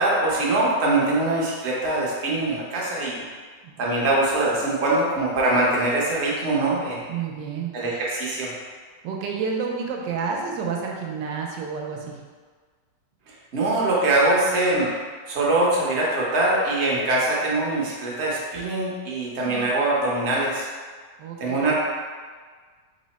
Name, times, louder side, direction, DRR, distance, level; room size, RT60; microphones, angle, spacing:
voice 1, 0.0-3.2 3.8-7.0 7.7-8.5 13.3-14.9 15.3-20.7 21.4-21.7, right 2 dB, 50° right, -5 dB, 0.8 m, -23 dB
voice 2, 7.1-7.7 9.0-12.2 19.4-19.7 21.2-21.6, right 5 dB, 80° right, 0 dB, 1.2 m, -30 dB
3.5 x 2.0 x 4.0 m, 1.5 s
omnidirectional pair, 1.9 m